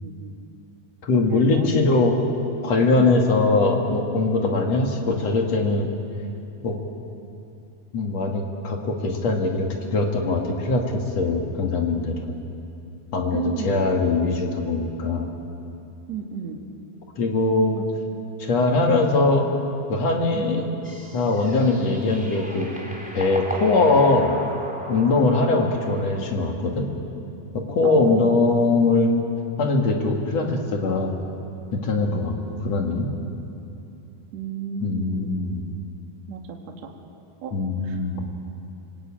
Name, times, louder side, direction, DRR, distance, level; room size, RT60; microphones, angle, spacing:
voice 1, 0.0-0.4 1.2-1.7 3.0-3.1 4.5-4.6 13.3-13.9 16.1-16.6 17.7-17.8 20.3-20.5 25.1-25.3 27.8-28.4 32.0-32.2 34.3-35.4 36.3-36.6 37.4-37.5 37.8-38.0, right 6 dB, 55° right, 2 dB, 2.5 m, -33 dB
voice 2, 1.0-2.1 2.6-5.9 6.6-6.8 7.9-10.8 11.2-12.2 13.1-15.3 17.2-17.8 18.4-19.5 19.9-20.6 21.1-22.7 23.1-24.4 24.9-26.9 27.5-29.1 29.6-31.1 31.7-32.4 32.6-33.1 34.8-35.6 37.5-38.3, left 3 dB, 50° left, 2 dB, 2.8 m, -21 dB
sound 1, 20.8-26.4, equal, ahead, 2.6 m, -37 dB
27.0 x 19.5 x 8.9 m, 2.8 s
omnidirectional pair, 4.4 m